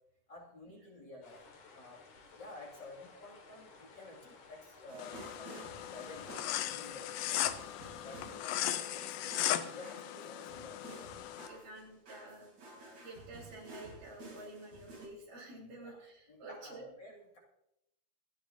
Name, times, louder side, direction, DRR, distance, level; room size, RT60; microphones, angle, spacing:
voice 1, 0.3-2.0 2.3-11.1 15.8-16.0 16.3-17.4, left 2 dB, 35° left, -1 dB, 3.0 m, -52 dB
sound 1, 1.2-7.2, left 4 dB, 65° left, 3.4 m, -57 dB
sound 2, 4.9-15.1, right 2 dB, 55° right, 4.5 m, -53 dB
sound 3, 5.0-11.5, left 12 dB, 85° left, 2.3 m, -37 dB
voice 2, 11.5-12.5 12.9-16.9, right 2 dB, 80° right, -3 dB, 5.5 m, -50 dB
26.5 x 10.0 x 2.8 m, 0.80 s
omnidirectional pair, 3.7 m